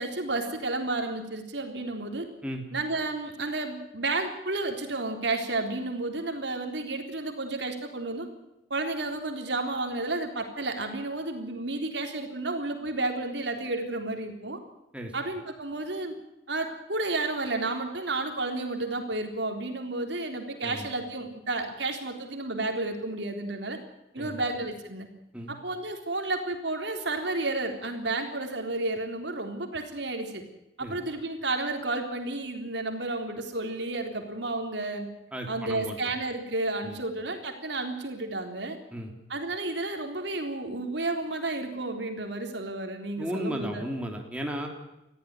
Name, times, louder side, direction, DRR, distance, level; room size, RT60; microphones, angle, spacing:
voice 1, 0.0-2.3 2.7-8.3 8.7-14.6 15.1-16.1 16.5-23.8 24.1-25.1 25.5-30.4 30.8-35.1 35.5-38.8 39.3-43.8, right 2 dB, 70° right, 5 dB, 3.7 m, -31 dB
voice 2, 35.3-36.1 36.8-37.0 38.9-39.1 43.2-44.7, equal, 5° right, 2 dB, 3.3 m, -35 dB
20.5 x 15.0 x 9.1 m, 0.91 s
head